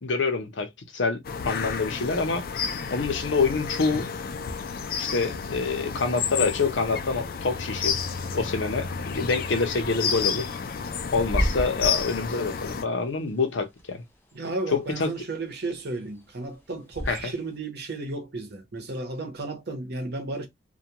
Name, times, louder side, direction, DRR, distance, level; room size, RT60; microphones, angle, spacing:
voice 1, 0.0-2.4 2.9-4.1 5.0-8.0 8.3-10.5 11.1-14.0 14.7-15.1 17.1-17.3, left 4 dB, 85° left, 0.7 m, -26 dB
sound 1, 1.2-12.8, left 6 dB, 50° left, 0.4 m, -31 dB
Bird / Wind, 10.3-17.6, equal, 10° left, 0.6 m, -35 dB
voice 2, 14.3-20.5, right 2 dB, 60° right, 0.8 m, -33 dB
2.3 x 2.2 x 2.8 m
head